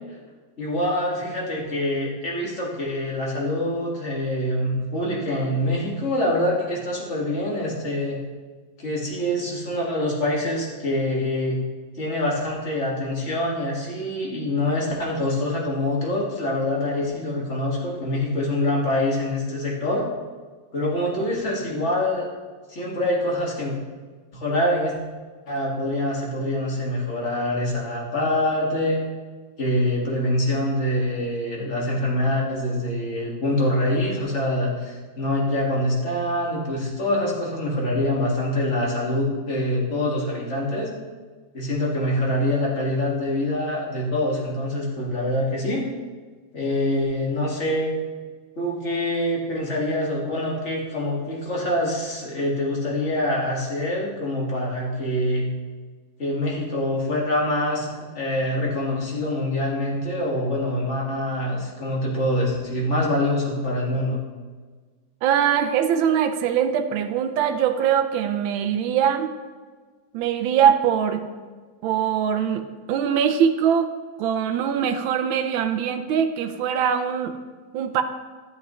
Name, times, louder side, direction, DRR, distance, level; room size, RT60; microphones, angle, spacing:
voice 1, 0.6-8.2 8.8-11.6 12.0-20.1 20.7-22.3 22.7-23.7 24.3-24.9 25.5-29.0 29.6-40.9 41.5-45.8 46.5-47.9 48.6-55.5 56.2-64.2, left 1 dB, 40° left, -3 dB, 2.0 m, -25 dB
voice 2, 65.2-69.4 70.1-71.2 71.8-73.9 74.2-77.3 77.7-78.0, right 8 dB, 90° right, 7 dB, 1.4 m, -22 dB
12.0 x 8.1 x 3.1 m, 1.5 s
omnidirectional pair, 2.1 m